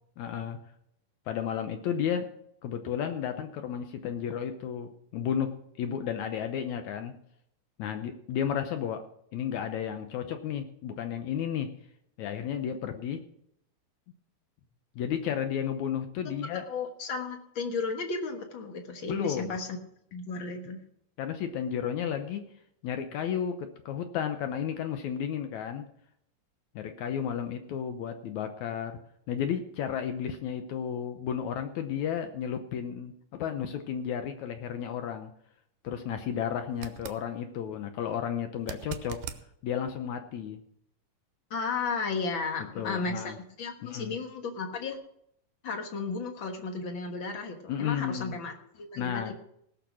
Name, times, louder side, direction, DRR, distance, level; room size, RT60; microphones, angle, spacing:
voice 1, 0.2-0.6 1.3-2.3 2.6-7.1 7.8-9.1 9.3-11.7 12.2-13.2 15.0-16.6 19.1-19.5 21.2-22.4 22.8-25.9 26.8-29.0 29.3-33.1 33.4-35.3 35.8-39.2 39.6-40.6 42.8-43.4 43.8-44.2 47.7-48.3 49.0-49.3, left 8 dB, 70° left, 7 dB, 1.9 m, -33 dB
voice 2, 16.2-19.8 20.1-20.8 41.5-45.0 45.6-49.3, left 4 dB, 55° left, 5 dB, 1.5 m, -34 dB
sound 1, 36.7-37.2 38.6-39.4 42.4-42.5, right 9 dB, 85° right, 2.4 m, -40 dB
18.0 x 6.6 x 6.2 m, 0.73 s
omnidirectional pair, 3.9 m